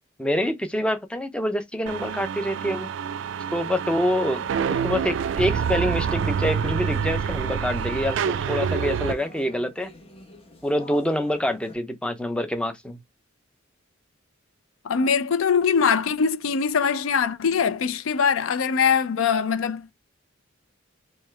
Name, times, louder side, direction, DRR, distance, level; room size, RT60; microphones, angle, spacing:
voice 1, 0.2-2.9 3.5-4.4 4.7-9.9 10.6-13.0, equal, 5° left, 0.5 m, -26 dB
sound 1, 1.9-9.1, right 7 dB, 65° right, 0.3 m, -27 dB
sound 2, 4.4-11.7, left 2 dB, 30° left, 1.0 m, -45 dB
voice 2, 14.8-19.9, left 6 dB, 85° left, 0.5 m, -22 dB
3.5 x 3.1 x 3.2 m
head